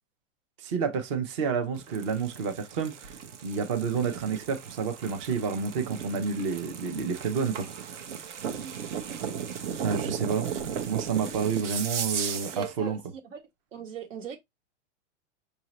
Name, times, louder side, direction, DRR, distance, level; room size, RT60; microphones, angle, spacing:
voice 1, 0.6-3.2 3.4-8.0 9.8-10.5 10.9-13.0, right 6 dB, 25° right, 0.5 m, -29 dB
sound 1, 1.7-12.7, right 7 dB, 75° right, 1.0 m, -36 dB
voice 2, 8.6-9.2 9.7-9.9 12.3-13.0 13.3-13.4 13.7-14.4, right 7 dB, 90° right, 1.6 m, -40 dB
5.6 x 2.7 x 3.0 m
supercardioid pair, 170°, 37 cm